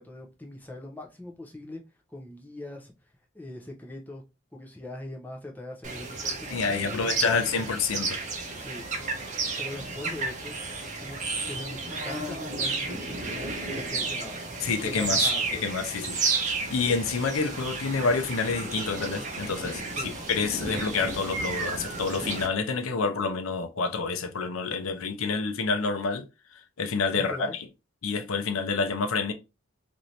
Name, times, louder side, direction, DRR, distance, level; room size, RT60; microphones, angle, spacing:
voice 1, 0.0-1.8 2.1-2.9 3.3-4.2 4.5-7.6 8.6-10.6 11.0-11.2 11.4-15.7 19.9-20.1 27.1-27.6, left 1 dB, 10° left, 0.5 m, -41 dB
sound 1, 5.8-22.5, right 3 dB, 35° right, 0.6 m, -32 dB
voice 2, 6.5-8.2 14.6-16.2 16.7-26.2 26.5-27.4 28.0-29.3, left 4 dB, 85° left, 0.5 m, -28 dB
3.1 x 2.6 x 2.7 m
head